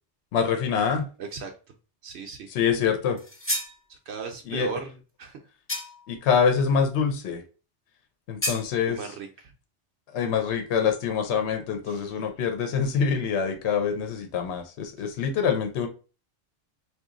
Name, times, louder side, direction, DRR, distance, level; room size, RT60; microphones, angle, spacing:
voice 1, 0.3-1.1 2.5-3.2 4.5-4.7 6.1-7.4 8.3-9.0 10.1-15.9, left 6 dB, 70° left, 6 dB, 1.0 m, -25 dB
voice 2, 1.2-1.5 2.0-2.5 3.9-5.4 8.9-9.5 11.9-12.2 15.0-15.1, right 5 dB, 70° right, 3 dB, 0.8 m, -37 dB
sound 1, 3.2-3.8 5.7-6.1 8.4-8.7, left 1 dB, 15° left, 0.4 m, -30 dB
2.9 x 2.4 x 3.7 m, 0.34 s
omnidirectional pair, 1.2 m